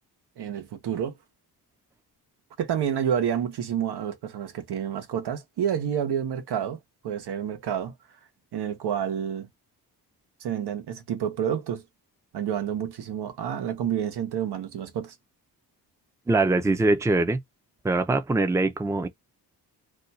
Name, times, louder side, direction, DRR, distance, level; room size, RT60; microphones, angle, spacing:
voice 1, 0.4-1.1 2.6-7.9 8.5-9.5 10.4-11.8 12.3-15.1, right 9 dB, 80° right, 1.0 m, -29 dB
voice 2, 16.3-17.4 17.8-19.1, right 2 dB, 10° right, 0.5 m, -23 dB
2.6 x 2.3 x 4.0 m
cardioid pair, 110°, 39 cm